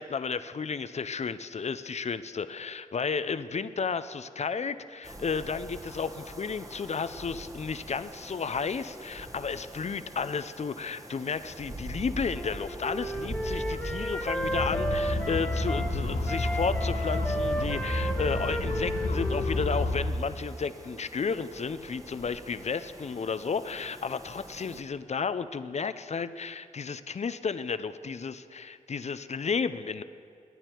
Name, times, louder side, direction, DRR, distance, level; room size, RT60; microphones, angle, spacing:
voice 1, 0.0-30.0, left 5 dB, 50° left, 13 dB, 0.6 m, -33 dB
sound 1, 5.0-24.8, right 1 dB, 25° right, 1.4 m, -44 dB
Wind instrument woodwind instrument, 12.3-15.9 16.3-20.0, equal, 5° left, 1.3 m, -33 dB
sound 2, 14.4-20.1, left 2 dB, 75° left, 1.5 m, -30 dB
20.5 x 9.7 x 4.6 m, 2.4 s
cardioid pair, 55°, 14 cm